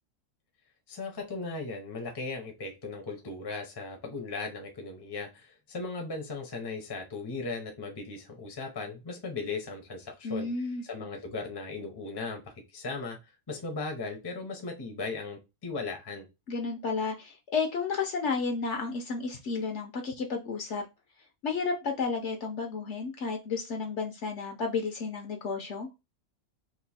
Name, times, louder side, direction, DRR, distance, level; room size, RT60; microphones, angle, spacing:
voice 1, 0.9-10.5 10.8-13.2 13.5-16.3, left 3 dB, 25° left, 0.6 m, -37 dB
voice 2, 10.2-10.8 16.5-20.8 21.4-25.9, left 4 dB, 60° left, 0.9 m, -32 dB
3.0 x 2.6 x 4.1 m
omnidirectional pair, 1.5 m